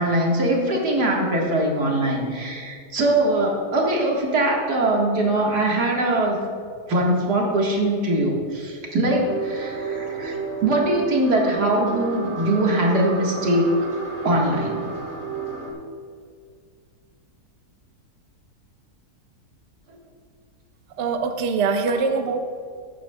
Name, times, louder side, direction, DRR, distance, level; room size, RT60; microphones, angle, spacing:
voice 1, 0.0-6.4 6.9-13.7 14.2-14.9 21.9-22.0, right 1 dB, 80° right, -1 dB, 2.2 m, -22 dB
sound 1, 9.2-15.7, right 5 dB, 15° right, 1.3 m, -31 dB
voice 2, 21.0-22.4, right 4 dB, 60° right, 6 dB, 0.8 m, -23 dB
15.0 x 10.5 x 2.3 m, 2.1 s
omnidirectional pair, 1.7 m